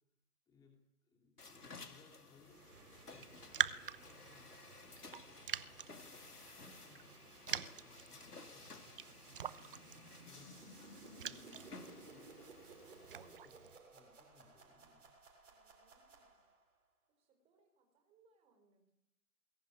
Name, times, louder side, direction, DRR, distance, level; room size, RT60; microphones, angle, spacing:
voice 1, 0.5-2.8 3.1-5.7 6.5-9.7 10.1-12.5 12.8-15.1, left 4 dB, 10° left, 2 dB, 2.7 m, -68 dB
sound 1, 1.4-13.4, left 3 dB, 85° left, 2.6 m, -56 dB
sound 2, 2.4-16.7, right 3 dB, 55° right, 7.0 m, -60 dB
Raindrop, 3.1-13.8, right 8 dB, 35° right, 0.8 m, -45 dB
voice 2, 15.5-16.4 17.2-18.9, right 3 dB, 15° right, 5 dB, 4.4 m, -75 dB
21.5 x 16.0 x 10.0 m, 0.80 s
figure-of-eight pair, 145°, 45 cm